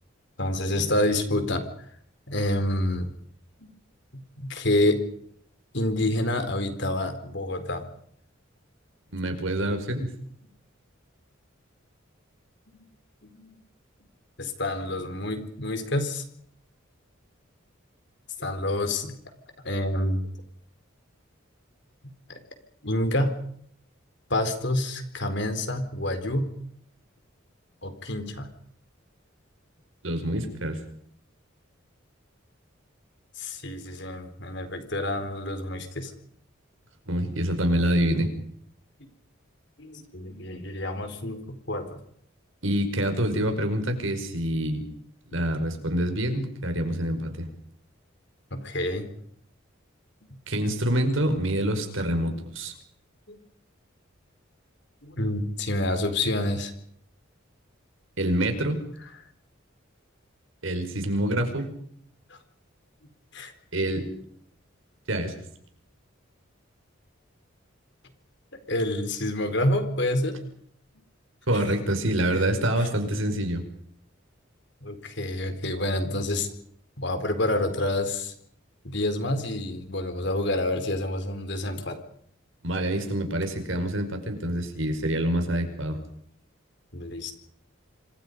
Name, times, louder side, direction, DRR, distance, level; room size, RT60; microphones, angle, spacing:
voice 1, 0.4-1.6 2.3-3.1 3.6-3.7 4.4-5.0 5.7-7.9 12.7-12.9 13.2-13.6 14.4-16.2 18.4-19.1 19.6-20.3 22.3-22.4 22.8-23.4 24.3-26.5 27.8-28.5 33.4-36.1 39.0-39.1 39.8-42.0 48.5-49.1 52.2-52.5 53.3-53.4 55.0-56.7 62.3-62.4 63.3-63.5 68.7-70.4 71.5-71.6 72.8-72.9 74.8-76.5 77.0-78.3 78.8-82.0 86.9-87.3, left 1 dB, 60° left, 8 dB, 4.2 m, -28 dB
voice 2, 9.1-10.1 30.0-30.8 37.1-38.3 42.6-44.8 45.3-47.5 50.5-52.7 58.2-58.8 60.6-61.7 63.7-64.1 65.1-65.3 71.5-73.6 82.6-86.0, right 1 dB, 75° right, 6 dB, 5.3 m, -26 dB
27.5 x 25.5 x 5.4 m, 0.67 s
head